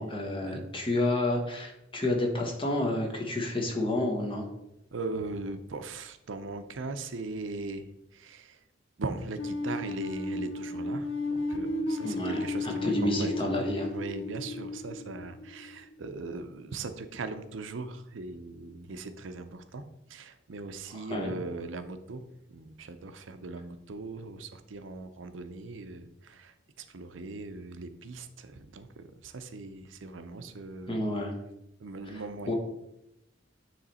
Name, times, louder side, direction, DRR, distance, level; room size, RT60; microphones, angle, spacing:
voice 1, 0.0-4.5 12.0-13.9 20.9-21.3 30.9-31.4 32.5-32.6, left 1 dB, 30° left, 2 dB, 1.2 m, -30 dB
voice 2, 4.9-7.9 8.1-8.6 9.0-13.5 13.9-19.8 20.1-31.0 31.8-32.5, right 3 dB, 85° right, 9 dB, 0.6 m, -39 dB
sound 1, 9.4-16.3, left 2 dB, 80° left, 0.6 m, -34 dB
9.4 x 3.3 x 4.2 m, 0.86 s
head